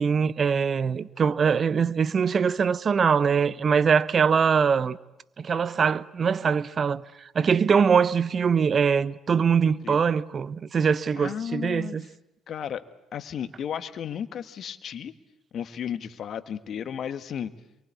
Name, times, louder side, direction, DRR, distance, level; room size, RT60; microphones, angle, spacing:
voice 1, 0.0-5.0 5.4-7.0 7.3-12.1, right 6 dB, 45° right, 1.0 m, -22 dB
voice 2, 11.2-11.9 12.5-12.8 13.1-15.1 15.5-17.5, left 8 dB, 55° left, 1.7 m, -34 dB
27.5 x 23.5 x 8.5 m
hypercardioid pair, 55°, 0 cm